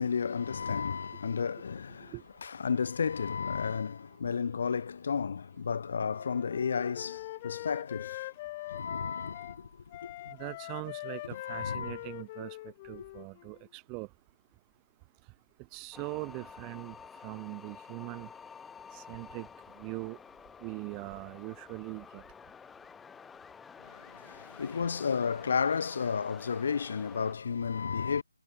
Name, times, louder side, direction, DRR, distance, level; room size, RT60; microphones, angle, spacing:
voice 1, 0.0-2.2 2.4-10.3 11.3-12.0 23.8-28.2, left 6 dB, 45° left, 4.2 m, -33 dB
Wind instrument woodwind instrument, 6.0-9.6 9.9-13.7, left 18 dB, 20° left, 0.8 m, -43 dB
voice 2, 10.3-14.1 15.7-17.0 17.2-18.3 18.9-19.5 19.7-20.2 20.6-22.2, right 32 dB, 15° right, 1.1 m, -41 dB
sound 1, 15.9-27.4, left 6 dB, 5° left, 2.5 m, -50 dB
hypercardioid pair, 165°, 0 cm